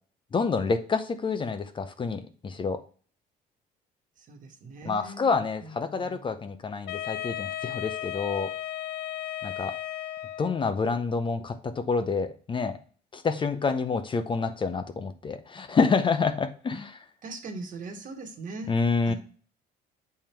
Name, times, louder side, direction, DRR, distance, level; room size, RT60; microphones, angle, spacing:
voice 1, 0.3-2.8 4.8-8.5 9.4-9.8 10.4-12.8 13.1-17.0 18.7-19.1, left 4 dB, 30° left, 9 dB, 0.6 m, -28 dB
voice 2, 4.2-5.3 5.6-6.3 17.2-18.8 19.0-19.1, right 3 dB, 50° right, 4 dB, 1.4 m, -40 dB
Wind instrument woodwind instrument, 6.9-10.7, left 12 dB, 80° left, 0.5 m, -35 dB
7.4 x 3.6 x 4.4 m, 0.42 s
cardioid pair, 110°, 17 cm